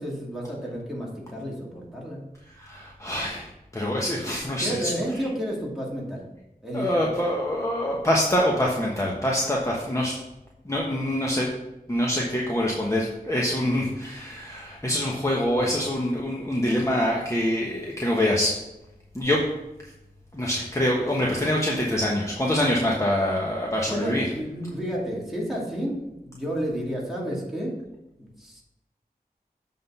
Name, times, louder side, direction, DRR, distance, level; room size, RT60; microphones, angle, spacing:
voice 1, 0.0-2.2 4.6-6.2 6.6-6.9 23.9-26.0 26.2-27.8 28.2-28.6, equal, ahead, -4 dB, 2.4 m, -31 dB
voice 2, 2.6-3.5 3.7-4.9 6.7-10.1 10.6-11.5 11.9-18.6 19.1-19.4 20.3-24.3, left 1 dB, 20° left, -3 dB, 1.1 m, -25 dB
7.7 x 3.8 x 5.5 m, 0.94 s
wide cardioid pair, 50°, 16 cm